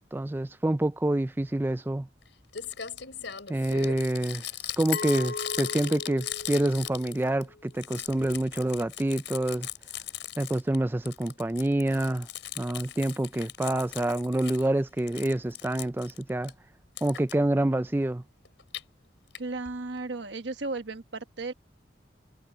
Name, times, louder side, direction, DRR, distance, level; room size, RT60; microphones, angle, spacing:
voice 1, 0.1-2.1 3.5-4.4 4.8-9.7 10.4-12.3 12.6-16.5 17.0-18.2, right 1 dB, 10° right, 0.3 m, -27 dB
Crumpling crinkling, 2.2-2.3 2.5-7.4 7.7-10.8 11.1-14.7 15.0-16.5 17.0-17.3 18.5-18.8 19.3-19.4 19.7-19.8 20.0-20.1, left 11 dB, 80° left, 4.3 m, -39 dB
Glass, 4.9-7.7, left 4 dB, 65° left, 4.1 m, -37 dB
voice 2, 19.4-21.5, right 3 dB, 75° right, 1.3 m, -35 dB
head